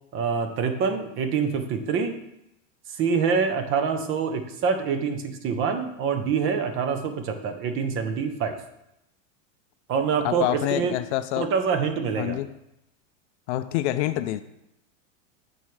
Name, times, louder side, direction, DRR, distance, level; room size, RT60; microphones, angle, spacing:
voice 1, 0.1-2.1 3.0-8.6 9.9-11.0 11.4-12.4, right 6 dB, 30° right, 7 dB, 0.7 m, -25 dB
voice 2, 10.2-11.5 12.2-12.5 13.5-14.4, left 14 dB, 60° left, 11 dB, 0.5 m, -26 dB
8.7 x 4.6 x 3.2 m, 0.84 s
supercardioid pair, 135°, 41 cm